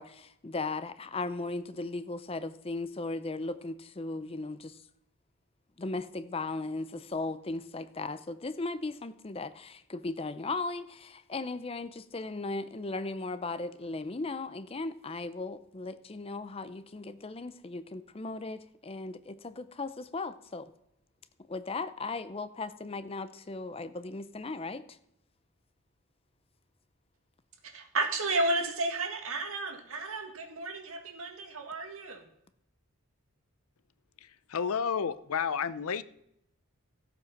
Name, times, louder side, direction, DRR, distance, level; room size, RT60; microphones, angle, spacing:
voice 1, 0.0-4.8 5.8-20.7 21.5-25.0, left 3 dB, 25° left, 13 dB, 0.5 m, -37 dB
voice 2, 27.6-32.3, right 2 dB, 70° right, 5 dB, 1.9 m, -32 dB
voice 3, 34.2-36.0, left 6 dB, 75° left, 15 dB, 0.6 m, -31 dB
14.0 x 7.8 x 5.8 m, 0.77 s
head